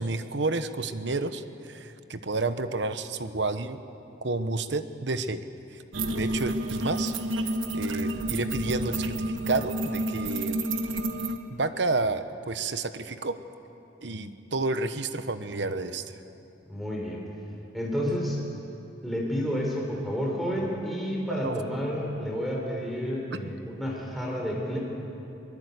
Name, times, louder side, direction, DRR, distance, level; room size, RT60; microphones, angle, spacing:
voice 1, 0.0-3.8 4.2-5.4 5.7-5.8 6.2-7.1 7.7-9.1 9.5-10.6 11.5-13.4 14.0-16.1 21.4-21.6, right 3 dB, 65° right, 10 dB, 1.0 m, -30 dB
sound 1, 5.9-11.4, right 1 dB, 90° right, 1.4 m, -29 dB
voice 2, 16.7-17.2 17.7-18.4 19.0-24.8, equal, ahead, -2 dB, 3.6 m, -30 dB
23.0 x 21.0 x 8.2 m, 2.8 s
head